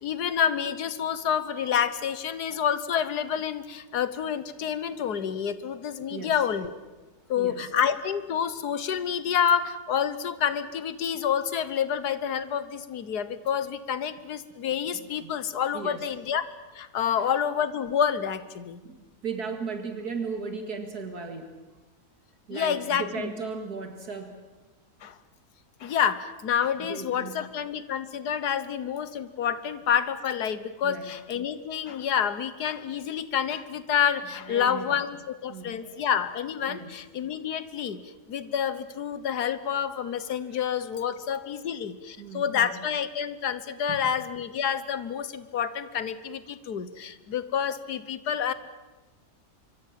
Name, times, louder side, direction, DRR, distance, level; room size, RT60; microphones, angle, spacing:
voice 1, 0.0-6.7 7.3-16.4 16.7-18.8 22.5-23.3 25.0-25.2 25.8-38.0 38.3-48.5, left 8 dB, 80° left, 13 dB, 1.7 m, -28 dB
voice 2, 6.1-6.4 7.3-7.7 14.9-15.3 15.7-16.1 17.2-17.3 18.8-21.5 22.5-24.4 26.8-27.4 30.8-31.1 34.4-35.0 35.5-36.1 36.7-36.9 42.2-42.8 43.9-44.0, right 5 dB, 75° right, 5 dB, 2.5 m, -37 dB
25.5 x 24.5 x 7.5 m, 1.2 s
omnidirectional pair, 1.7 m